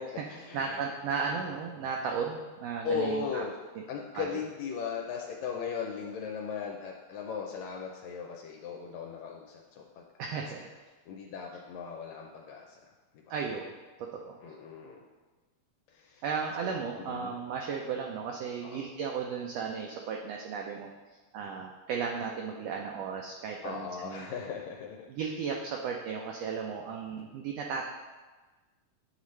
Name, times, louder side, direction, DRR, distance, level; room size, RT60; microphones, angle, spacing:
voice 1, 0.0-0.8 2.8-3.5 3.9-9.8 10.3-10.4 11.1-12.8 14.4-15.0 15.9-16.2 16.6-17.3 18.6-18.8 23.6-25.1, left 6 dB, 80° left, 0 dB, 1.8 m, -37 dB
voice 2, 0.5-3.4 3.7-3.8 4.1-4.4 10.2-10.7 13.3-13.7 14.0-14.4 16.2-20.9 21.3-24.3 25.1-27.9, right 6 dB, 80° right, 0 dB, 1.5 m, -35 dB
9.6 x 4.1 x 3.2 m, 1.3 s
omnidirectional pair, 3.4 m